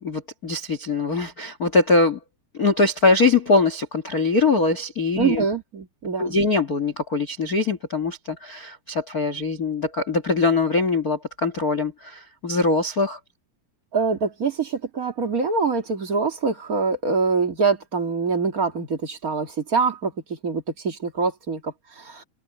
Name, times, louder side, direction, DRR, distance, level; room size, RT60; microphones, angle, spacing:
voice 1, 0.0-2.2 2.6-5.4 6.2-13.2, left 3 dB, 85° left, 0.8 m, -22 dB
voice 2, 5.1-6.3 13.9-22.2, right 4 dB, 30° right, 1.6 m, -24 dB
omnidirectional pair, 4.8 m